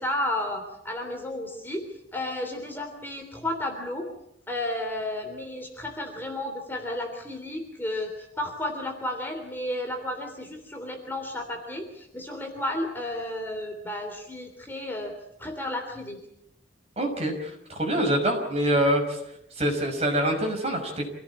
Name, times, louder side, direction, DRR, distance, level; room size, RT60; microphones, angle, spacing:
voice 1, 0.0-1.8 2.1-4.1 4.5-15.1 15.4-16.2, left 1 dB, 10° left, 3 dB, 3.3 m, -32 dB
voice 2, 17.0-19.2 19.5-21.1, right 1 dB, 30° right, 3 dB, 5.8 m, -25 dB
27.0 x 17.5 x 8.7 m, 0.80 s
head